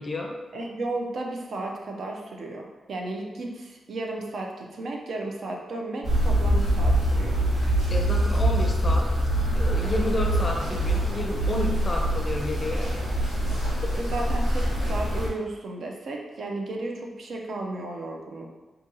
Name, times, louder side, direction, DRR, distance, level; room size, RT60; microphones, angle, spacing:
voice 1, 0.0-0.4 7.9-9.1 9.5-12.9 13.8-14.0, left 2 dB, 30° left, 1 dB, 0.5 m, -31 dB
voice 2, 0.5-7.4 13.3-13.6 13.9-18.5, right 2 dB, 60° right, 1 dB, 0.5 m, -34 dB
sound 1, 6.0-15.3, right 1 dB, 85° right, 1.3 m, -24 dB
2.7 x 2.7 x 3.8 m, 1.2 s
wide cardioid pair, 125°, 0 cm